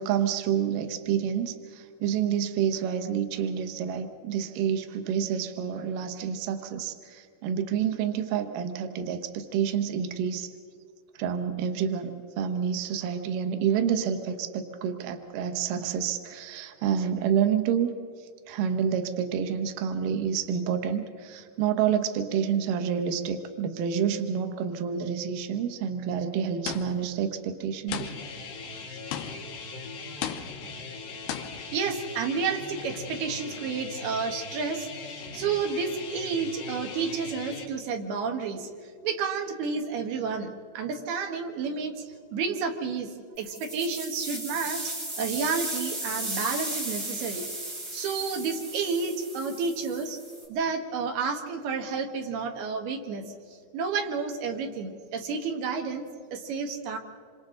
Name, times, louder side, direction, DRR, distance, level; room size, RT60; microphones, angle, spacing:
voice 1, 0.0-10.5 11.1-17.9 18.2-28.1 28.9-29.0, right 8 dB, 90° right, 7 dB, 1.9 m, -28 dB
sound 1, 26.7-27.2 27.9-28.5 29.1-29.6 30.2-30.8 31.3-31.7, left 10 dB, 75° left, 2.7 m, -36 dB
sound 2, 27.9-37.7, left 4 dB, 60° left, 4.2 m, -40 dB
voice 2, 31.7-38.7 39.0-43.1 43.4-47.5 47.9-50.2 50.5-53.2 53.5-57.0, right 5 dB, 65° right, 3 dB, 3.0 m, -31 dB
sound 3, 43.4-50.5, right 1 dB, 30° right, 4.5 m, -35 dB
27.0 x 26.0 x 3.9 m, 2.2 s
omnidirectional pair, 5.6 m